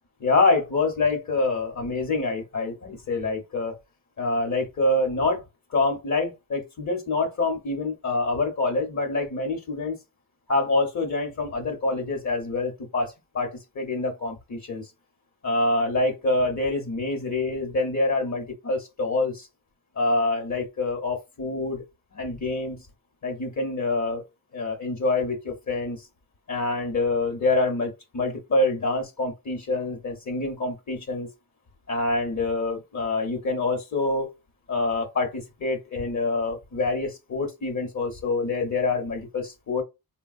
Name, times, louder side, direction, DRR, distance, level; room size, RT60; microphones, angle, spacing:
voice 1, 0.2-3.7 4.2-5.4 5.7-10.0 10.5-14.9 15.4-19.5 19.9-21.8 22.1-22.9 23.2-24.2 24.5-26.1 26.5-31.3 31.9-34.3 34.7-39.8, left 2 dB, 50° left, 1.0 m, -26 dB
3.3 x 2.2 x 2.4 m
cardioid pair, 75°, 37 cm